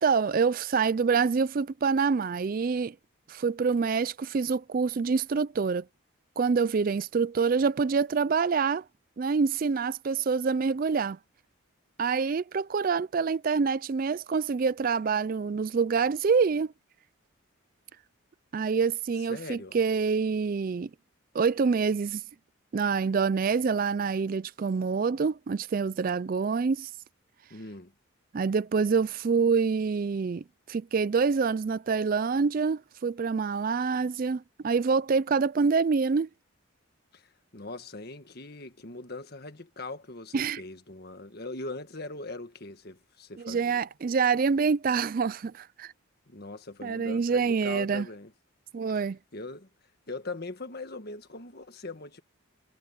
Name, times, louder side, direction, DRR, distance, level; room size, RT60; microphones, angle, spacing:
voice 1, 0.0-3.0 3.3-5.8 6.4-8.8 9.2-11.2 12.0-16.7 18.5-20.9 21.3-22.2 22.7-26.9 28.3-36.3 40.3-40.6 43.4-45.9 46.8-48.1 48.7-49.2, right 5 dB, 40° right, 0.4 m, -26 dB
voice 2, 19.3-19.8 27.5-27.9 37.1-43.8 46.3-48.3 49.3-49.7 50.1-52.2, left 2 dB, 45° left, 1.7 m, -41 dB
head